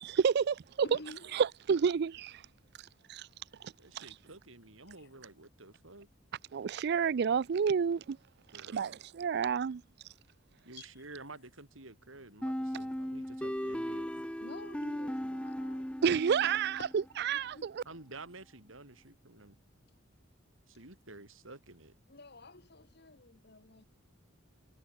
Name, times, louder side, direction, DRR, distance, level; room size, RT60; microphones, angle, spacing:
voice 1, 0.0-0.6 1.3-2.4 3.1-3.3 3.6-4.0 6.5-8.2 8.7-9.8 16.0-17.8, right 6 dB, 55° right, 0.4 m, -30 dB
voice 2, 0.8-1.3 5.0-5.1 10.8-11.0 14.4-15.9 16.4-16.9 17.3-17.7 22.1-23.9, left 2 dB, 55° left, 2.2 m, -50 dB
voice 3, 3.8-6.1 8.5-9.0 10.6-14.1 17.8-19.6 20.7-22.0, right 2 dB, 80° right, 5.7 m, -51 dB
sound 1, 12.4-17.1, equal, 5° left, 1.4 m, -37 dB
head